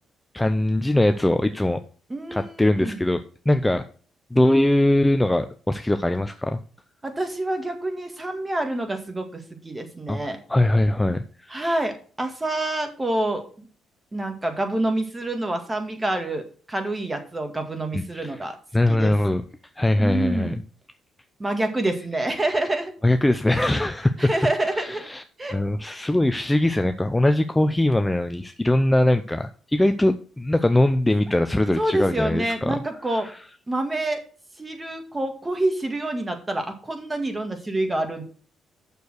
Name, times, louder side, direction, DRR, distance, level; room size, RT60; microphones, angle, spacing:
voice 1, 0.3-1.8 2.3-3.2 3.5-3.8 4.3-6.6 10.1-10.2 10.5-11.8 17.9-18.3 18.7-19.4 19.8-20.5 23.0-24.3 24.8-25.2 25.5-32.8 33.2-33.3, left 1 dB, 10° left, 8 dB, 0.5 m, -21 dB
voice 2, 2.1-3.1 7.0-10.4 11.5-13.7 14.1-18.6 18.9-19.1 20.0-20.6 21.4-22.9 24.2-25.0 25.4-25.6 25.9-26.1 31.8-33.3 33.7-34.2 34.6-38.2, right 1 dB, 20° right, 6 dB, 2.0 m, -27 dB
7.0 x 6.6 x 6.5 m, 0.42 s
cardioid pair, 90°, 0 cm